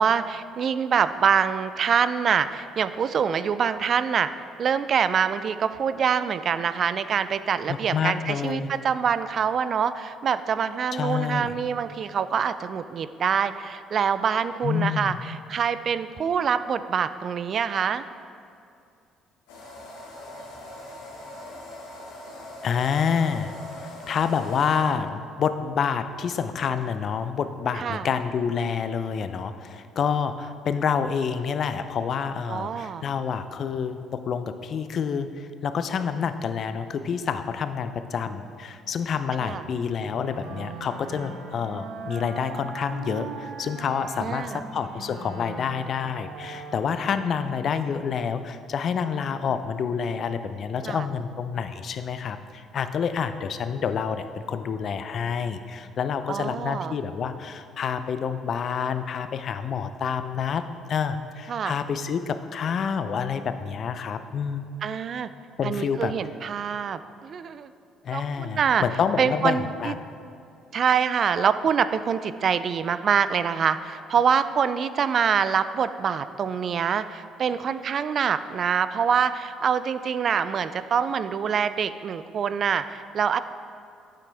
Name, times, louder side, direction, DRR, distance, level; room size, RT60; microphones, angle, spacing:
voice 1, 0.0-4.3 4.6-18.0 27.8-28.1 32.5-33.0 39.4-39.6 44.2-44.6 50.8-51.1 56.3-56.9 61.5-61.7 64.8-65.3 65.6-67.7 68.1-68.8 69.2-69.9 70.7-83.4, right 7 dB, 55° right, 13 dB, 0.3 m, -25 dB
voice 2, 7.7-8.7 10.9-11.6 14.6-15.2 22.6-23.5 23.8-60.6 60.9-64.7 65.6-66.1 68.0-70.0, left 6 dB, 55° left, 10 dB, 0.4 m, -28 dB
sound 1, 19.5-24.8, left 1 dB, 85° left, 1.8 m, -41 dB
Wind instrument woodwind instrument, 40.0-47.4, right 5 dB, 80° right, 0.8 m, -40 dB
8.5 x 7.6 x 3.4 m, 2.5 s
hypercardioid pair, 55°, 0 cm